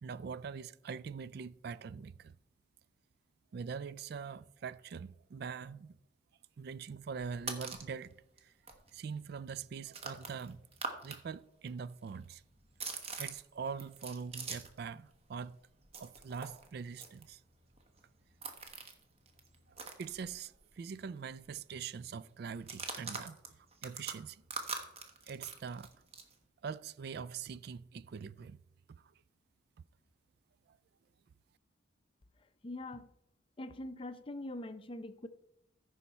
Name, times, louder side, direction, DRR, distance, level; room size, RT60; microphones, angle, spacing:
voice 1, 0.0-2.4 3.5-6.0 6.6-8.1 8.4-8.5 8.9-10.6 11.0-12.4 13.2-15.6 16.0-17.4 19.7-23.4 23.8-24.4 25.2-25.9 26.6-28.6 29.0-29.1 30.7-30.8, right 6 dB, 55° right, 0.3 m, -43 dB
sound 1, 7.2-7.9 8.4-8.5 8.7-11.2 11.5-14.9 15.1-20.8 21.1-21.2 21.4-21.8 22.5-26.3, right 4 dB, 30° right, 1.1 m, -44 dB
voice 2, 32.6-33.1 33.6-35.3, left 1 dB, 25° left, 0.5 m, -43 dB
14.5 x 5.7 x 4.2 m
head